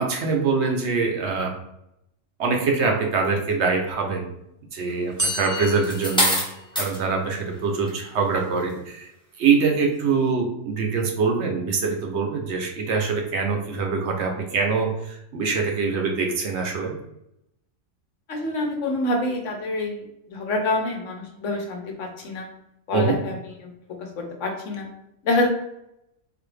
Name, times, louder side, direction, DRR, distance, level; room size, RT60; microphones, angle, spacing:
voice 1, 0.0-1.5 2.4-4.3 4.7-6.4 6.8-9.1 9.4-17.0 22.9-23.2, right 4 dB, 65° right, 2 dB, 0.9 m, -24 dB
sound 1, 5.2-7.1, equal, 20° right, 0.6 m, -31 dB
sound 2, 5.3-7.0 7.7-8.0, equal, 5° left, 0.9 m, -24 dB
voice 2, 18.3-20.0 20.3-22.5 22.9-23.3 24.2-24.9 25.2-25.5, left 2 dB, 70° left, 2 dB, 1.1 m, -26 dB
4.0 x 2.5 x 3.2 m, 0.82 s
omnidirectional pair, 1.3 m